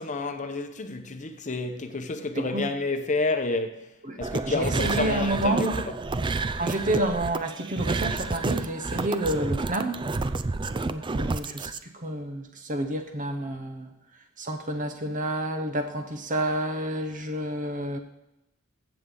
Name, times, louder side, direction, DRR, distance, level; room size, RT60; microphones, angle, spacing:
voice 1, 0.0-3.8 4.2-5.9, left 3 dB, 35° left, 0.8 m, -29 dB
voice 2, 4.1-5.8 6.6-10.0 10.9-13.9 14.4-18.0, right 1 dB, 40° right, 1.0 m, -29 dB
sound 1, 4.2-11.8, right 3 dB, 20° right, 0.4 m, -30 dB
15.5 x 7.1 x 3.9 m
head